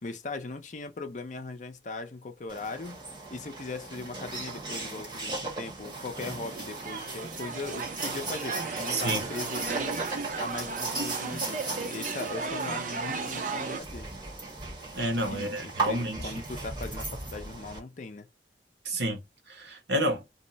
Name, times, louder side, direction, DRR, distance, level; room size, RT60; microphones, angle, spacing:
voice 1, 0.0-3.0 3.3-10.0 10.4-14.1 15.3-18.3, left 3 dB, 45° left, 0.5 m, -39 dB
sound 1, 2.5-17.8, right 3 dB, 25° right, 1.3 m, -37 dB
sound 2, 6.2-13.8, right 4 dB, 45° right, 0.5 m, -35 dB
voice 2, 8.9-9.3 14.9-16.3 18.8-20.2, right 1 dB, 75° right, 1.0 m, -30 dB
2.7 x 2.1 x 3.9 m
head